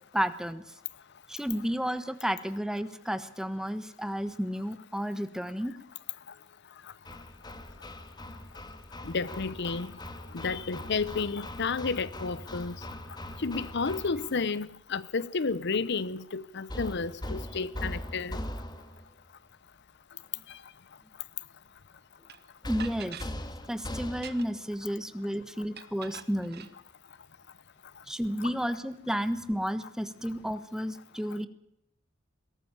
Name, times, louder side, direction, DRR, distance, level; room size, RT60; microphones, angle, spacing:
voice 1, 0.1-0.6 1.3-5.7 22.7-23.3 23.7-26.7 28.1-31.5, equal, 5° right, 1.3 m, -32 dB
Hammer, 7.0-14.5 16.7-19.1 22.6-24.6, left 1 dB, 20° left, 1.9 m, -40 dB
voice 2, 9.0-9.9 10.3-12.7 13.4-18.4 20.5-20.6 28.4-28.5, left 4 dB, 60° left, 0.8 m, -31 dB
sound 1, 22.3-22.4 22.8-23.3 24.1-24.7 25.8-26.7, right 8 dB, 55° right, 1.5 m, -45 dB
22.5 x 17.5 x 7.1 m
head